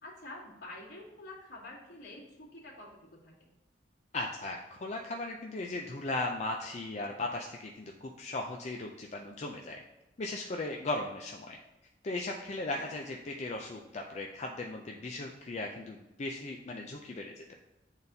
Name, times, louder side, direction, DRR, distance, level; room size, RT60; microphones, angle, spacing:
voice 1, 0.0-3.5 12.7-12.9, left 2 dB, 85° left, -14 dB, 2.2 m, -48 dB
voice 2, 4.1-9.8 10.2-11.6 12.0-17.4, left 2 dB, 40° left, 1 dB, 0.4 m, -37 dB
8.7 x 4.0 x 2.7 m, 0.97 s
head